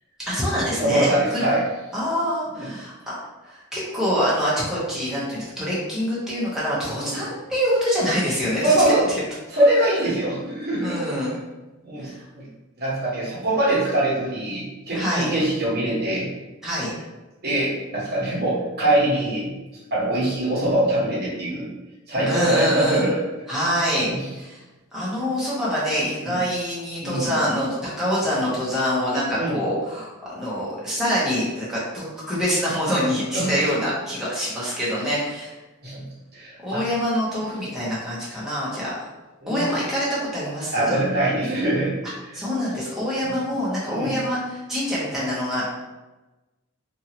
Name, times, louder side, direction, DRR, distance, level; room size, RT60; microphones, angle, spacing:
voice 1, 0.2-1.5 1.9-3.1 3.4-8.7 9.1-9.2 10.8-11.4 12.0-12.2 14.9-15.3 16.6-16.9 22.3-23.0 23.5-24.6 24.9-35.6 36.6-38.9 39.5-40.9 42.3-45.7, equal, ahead, -9 dB, 0.9 m, -25 dB
voice 2, 0.8-1.6 2.6-2.7 7.0-7.1 8.6-9.1 9.5-11.0 11.8-12.5 12.8-16.3 17.4-19.5 19.9-21.7 22.1-23.2 24.0-24.2 26.3-26.4 27.0-27.3 29.4-29.6 33.3-33.5 35.8-36.0 36.3-36.8 39.4-39.7 40.7-41.9 42.3-42.4 43.9-44.2, right 1 dB, 50° right, -7 dB, 1.1 m, -23 dB
2.7 x 2.6 x 2.9 m, 1.1 s
head